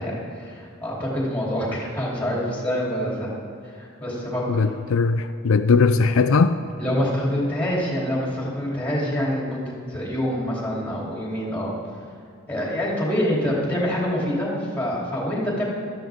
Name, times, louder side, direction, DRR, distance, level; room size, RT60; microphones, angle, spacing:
voice 1, 0.0-3.3 3.6-4.7 6.8-9.6 9.9-11.7 12.5-15.6, equal, 5° left, -5 dB, 3.2 m, -26 dB
voice 2, 4.5-6.6, left 4 dB, 70° left, 9 dB, 0.4 m, -19 dB
16.5 x 13.0 x 3.6 m, 2.3 s
head